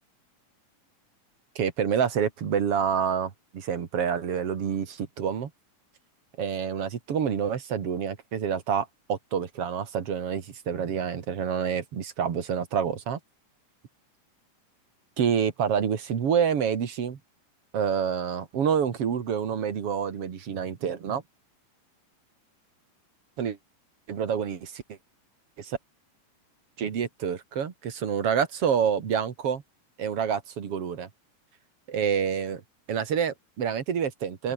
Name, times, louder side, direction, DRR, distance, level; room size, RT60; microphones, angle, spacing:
voice 1, 1.6-5.5 6.4-13.2 15.2-17.2 17.7-21.2 23.4-23.6 24.1-25.0 25.6-25.8 26.8-29.6 30.0-31.1 31.9-32.6 32.9-34.5, right 7 dB, 45° right, 2.8 m, -27 dB
open air
omnidirectional pair, 3.9 m